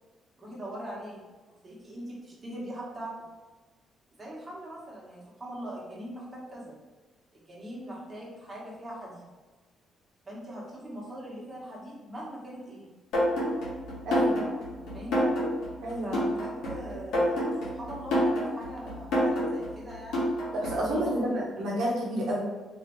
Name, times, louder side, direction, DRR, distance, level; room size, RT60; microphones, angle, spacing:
voice 1, 0.4-1.2 1.6-3.1 4.2-6.7 7.3-9.3 10.3-12.9 14.7-15.3 16.0-20.3 21.1-21.3, right 1 dB, 25° right, -5 dB, 1.3 m, -41 dB
sound 1, 13.1-20.9, equal, 85° left, 1.3 m, -28 dB
voice 2, 14.0-14.4 15.8-16.2 20.5-22.4, right 1 dB, 75° right, -4 dB, 0.8 m, -29 dB
3.1 x 2.8 x 3.1 m, 1.3 s
cardioid pair, 90°, 0 cm